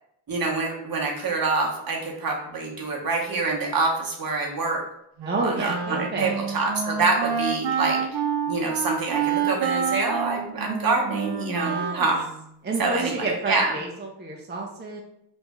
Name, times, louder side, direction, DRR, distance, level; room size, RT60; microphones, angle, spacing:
voice 1, 0.3-4.8 5.4-8.0 8.5-12.2 12.8-13.7, right 3 dB, 55° right, 0 dB, 0.9 m, -26 dB
voice 2, 5.2-6.3 11.6-12.1 12.6-15.0, right 3 dB, 25° right, -1 dB, 0.6 m, -30 dB
Wind instrument woodwind instrument, 5.2-12.5, right 6 dB, 70° right, 0.5 m, -28 dB
3.1 x 2.6 x 3.4 m, 0.77 s
wide cardioid pair, 90°, 42 cm